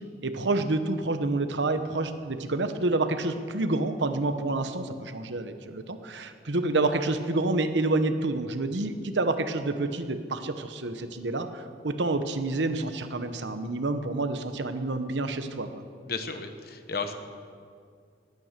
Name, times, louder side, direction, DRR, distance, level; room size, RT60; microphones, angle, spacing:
voice 1, 0.2-15.8, right 2 dB, 80° right, 9 dB, 1.0 m, -28 dB
voice 2, 16.1-17.1, left 4 dB, 55° left, 8 dB, 1.1 m, -33 dB
19.5 x 9.5 x 6.7 m, 2.2 s
head